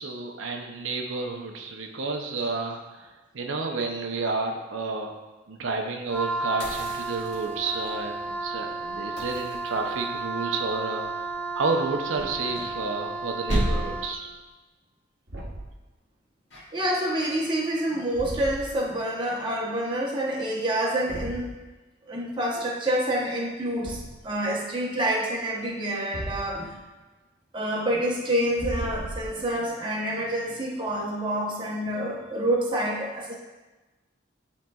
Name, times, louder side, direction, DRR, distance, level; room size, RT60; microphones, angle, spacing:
voice 1, 0.0-5.1 5.5-11.3 11.5-14.3, right 3 dB, 85° right, 2 dB, 0.6 m, -31 dB
Wind instrument woodwind instrument, 6.1-14.2, right 3 dB, 10° left, 0.4 m, -33 dB
sound 1, 6.6-7.9 9.2-10.3 12.1-13.2 13.5-14.2 16.5-16.9, equal, 65° left, 1.9 m, -31 dB
Thump thud, 15.3-15.8 18.1-18.8 21.1-21.5 23.8-24.3 26.1-26.8 28.5-29.5, right 1 dB, 55° right, 1.0 m, -36 dB
voice 2, 16.7-21.5 22.1-24.0 24.2-26.7 27.5-33.4, right 1 dB, 25° right, -3 dB, 0.9 m, -27 dB
10.5 x 3.9 x 2.3 m, 1.2 s
head